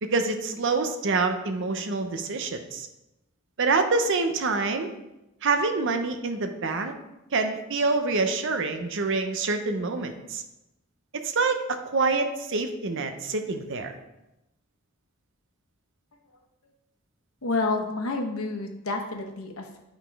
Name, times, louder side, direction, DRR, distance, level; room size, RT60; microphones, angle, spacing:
voice 1, 0.0-2.9 3.6-4.9 5.4-6.9 7.3-10.4 11.1-13.9, right 3 dB, 60° right, 7 dB, 0.8 m, -26 dB
voice 2, 17.4-19.8, left 3 dB, 80° left, 3 dB, 1.1 m, -29 dB
8.9 x 4.1 x 4.7 m, 0.94 s
head